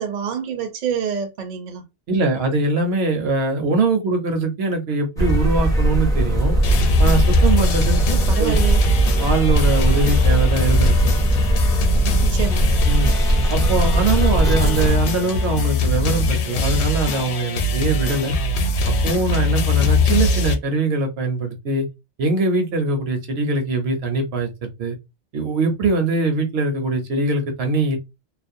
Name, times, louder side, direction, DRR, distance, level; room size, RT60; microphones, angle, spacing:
voice 1, 0.0-1.8 8.1-8.8 12.2-12.7, right 7 dB, 50° right, 0.6 m, -27 dB
voice 2, 2.1-6.6 7.0-8.0 8.4-8.6 9.2-11.1 12.9-13.1 13.5-18.4 18.9-21.9 22.2-25.0 25.3-28.0, right 3 dB, 70° right, 0.9 m, -22 dB
sound 1, 5.2-14.9, right 1 dB, 5° left, 0.5 m, -19 dB
sound 2, 6.6-20.5, left 2 dB, 80° left, 0.8 m, -21 dB
2.5 x 2.0 x 2.5 m
omnidirectional pair, 1.1 m